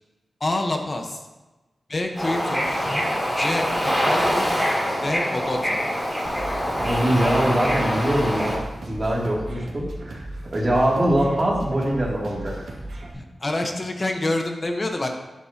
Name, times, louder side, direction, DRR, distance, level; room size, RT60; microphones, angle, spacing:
voice 1, 0.4-1.3 1.9-2.7 3.3-4.5 5.0-5.8 13.1-15.1, left 2 dB, 30° left, 3 dB, 1.3 m, -27 dB
Bird / Ocean, 2.1-8.6, equal, ahead, 3.6 m, -24 dB
sound 1, 6.2-13.1, right 1 dB, 90° right, 2.6 m, -36 dB
voice 2, 6.8-8.5 8.9-10.2 10.5-12.7, right 1 dB, 30° right, -4 dB, 2.9 m, -23 dB
12.5 x 9.8 x 3.0 m, 1.1 s
wide cardioid pair, 140°, 0 cm